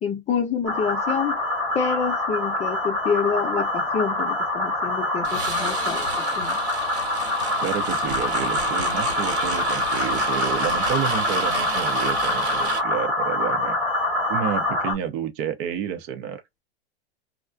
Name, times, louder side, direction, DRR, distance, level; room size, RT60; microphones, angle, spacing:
voice 1, 0.0-1.4 1.7-6.1 6.4-6.6, left 6 dB, 20° left, 0.5 m, -27 dB
sound 1, 0.6-14.9, left 1 dB, ahead, 1.0 m, -25 dB
sound 2, 5.2-12.8, right 3 dB, 90° right, 1.3 m, -32 dB
voice 2, 7.6-13.8 14.3-16.4, right 8 dB, 50° right, 0.7 m, -30 dB
2.4 x 2.1 x 2.4 m
hypercardioid pair, 120°, 32 cm